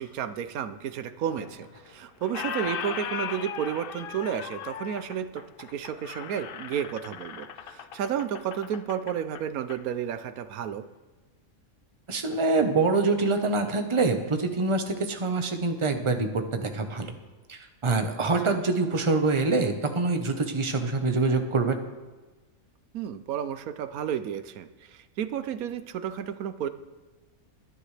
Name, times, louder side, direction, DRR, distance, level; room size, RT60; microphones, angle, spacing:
voice 1, 0.0-10.8 18.4-18.6 22.9-26.7, right 9 dB, 85° right, 12 dB, 1.2 m, -32 dB
Squeak, 1.4-1.9 2.2-9.8, left 8 dB, 60° left, 0.6 m, -38 dB
voice 2, 12.1-17.1 17.5-21.8, right 3 dB, 25° right, 5 dB, 1.0 m, -25 dB
22.5 x 10.5 x 3.3 m, 1.2 s
omnidirectional pair, 1.5 m